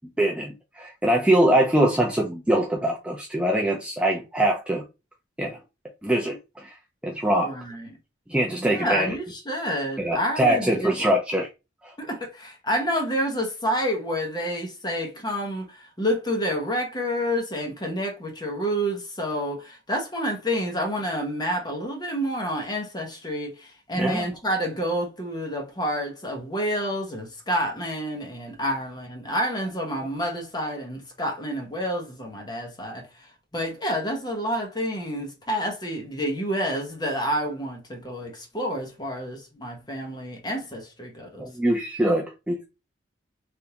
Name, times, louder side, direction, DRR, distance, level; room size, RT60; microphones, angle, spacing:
voice 1, 0.2-4.8 5.4-5.6 6.0-6.8 7.0-7.5 8.3-9.1 10.0-11.5 11.8-11.9 24.0-24.3 41.4-42.7, right 1 dB, 5° right, 0.4 m, -23 dB
voice 2, 7.4-8.0 8.6-10.9 12.0-41.5, equal, 20° left, 0.9 m, -29 dB
3.4 x 2.6 x 2.8 m
head